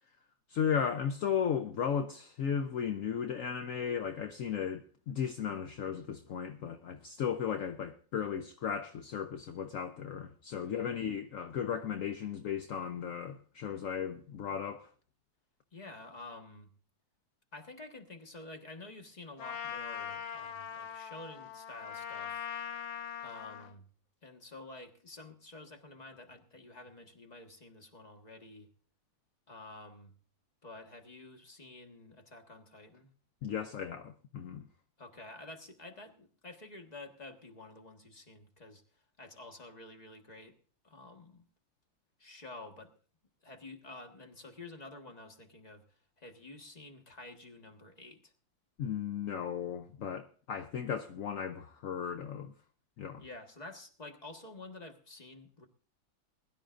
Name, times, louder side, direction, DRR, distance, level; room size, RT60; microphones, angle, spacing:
voice 1, 0.5-14.9 33.4-34.7 48.8-52.5 53.0-53.2, left 7 dB, 65° left, 0.8 m, -35 dB
voice 2, 10.6-11.0 15.7-16.7 17.5-22.5 23.2-23.8 24.2-28.7 29.5-30.1 30.6-33.1 35.0-38.8 39.2-40.5 40.8-41.4 42.2-42.9 43.4-48.3 53.2-55.7, left 2 dB, 25° left, 1.4 m, -50 dB
Trumpet, 19.4-23.7, left 9 dB, 80° left, 1.7 m, -41 dB
21.0 x 12.0 x 2.5 m
omnidirectional pair, 2.0 m